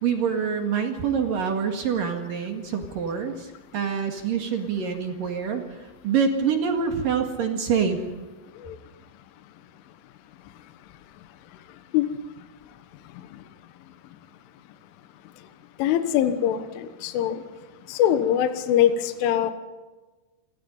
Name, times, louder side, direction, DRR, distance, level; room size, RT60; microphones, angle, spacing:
voice 1, 0.0-5.6 6.0-8.0, right 6 dB, 55° right, 4 dB, 2.9 m, -26 dB
voice 2, 15.8-17.4 17.9-19.5, left 10 dB, 75° left, 9 dB, 3.7 m, -22 dB
28.0 x 23.5 x 5.5 m, 1.2 s
omnidirectional pair, 5.8 m